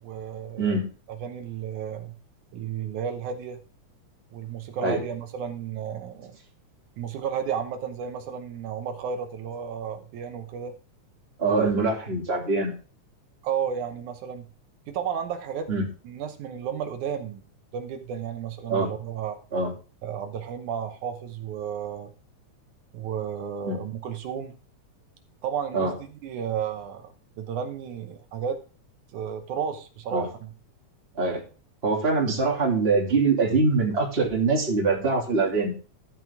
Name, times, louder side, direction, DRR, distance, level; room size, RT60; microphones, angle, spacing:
voice 1, 0.0-0.8 1.1-2.1 2.5-3.6 4.3-6.4 7.0-10.8 11.4-11.7 13.4-14.5 14.9-15.7 16.0-17.4 17.7-19.4 20.0-22.1 22.9-24.6 25.4-26.0 26.2-27.1 27.4-28.6 29.1-30.5, right 8 dB, 80° right, 6 dB, 2.4 m, -32 dB
voice 2, 11.4-12.7 15.7-15.8 18.7-18.9 19.5-19.7 23.6-23.8 25.7-25.9 30.1-30.3 31.1-31.4 31.8-35.7, right 3 dB, 20° right, 0 dB, 2.7 m, -23 dB
12.5 x 9.0 x 3.6 m, 0.36 s
omnidirectional pair, 3.5 m